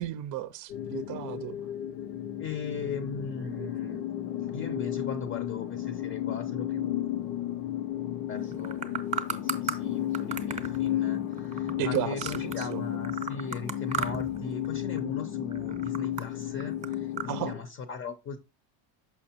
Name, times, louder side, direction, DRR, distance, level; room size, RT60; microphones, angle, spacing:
voice 1, 0.0-1.6 11.8-12.8 17.3-17.5, right 13 dB, 45° right, 0.6 m, -34 dB
sound 1, 0.7-17.6, left 12 dB, 90° left, 0.8 m, -33 dB
voice 2, 2.4-4.1 4.5-7.4 8.3-8.9 9.2-18.4, left 4 dB, 30° left, 0.7 m, -38 dB
sound 2, 8.5-9.8 10.1-12.7 13.0-14.4 14.6-15.1 15.5-17.3, right 5 dB, 15° right, 0.9 m, -35 dB
6.4 x 5.8 x 2.9 m
supercardioid pair, 125°, 43 cm